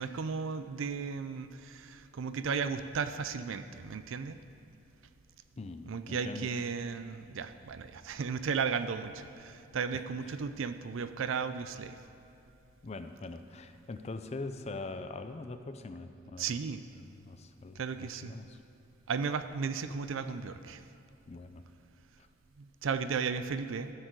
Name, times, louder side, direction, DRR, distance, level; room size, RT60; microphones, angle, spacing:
voice 1, 0.0-4.4 5.9-12.0 16.4-16.8 17.8-18.3 19.1-20.8 22.6-23.9, right 5 dB, 75° right, 11 dB, 0.5 m, -35 dB
voice 2, 5.6-6.5 9.9-10.3 12.8-16.6 17.0-18.6 21.3-21.6, left 3 dB, 35° left, 9 dB, 0.4 m, -43 dB
14.0 x 6.6 x 4.6 m, 2.7 s
head